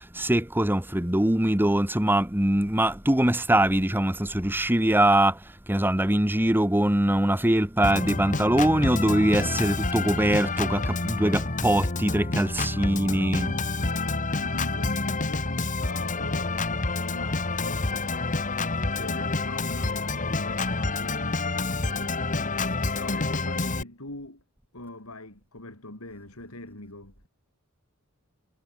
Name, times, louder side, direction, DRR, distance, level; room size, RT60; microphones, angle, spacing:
voice 1, 0.0-13.5, right 1 dB, 10° right, 1.5 m, -23 dB
Organ, 7.8-23.8, left 3 dB, 35° left, 2.0 m, -28 dB
voice 2, 12.7-13.4 13.7-16.6 17.0-17.9 18.9-22.7 22.9-24.4 24.7-27.3, left 2 dB, 85° left, 6.4 m, -43 dB
head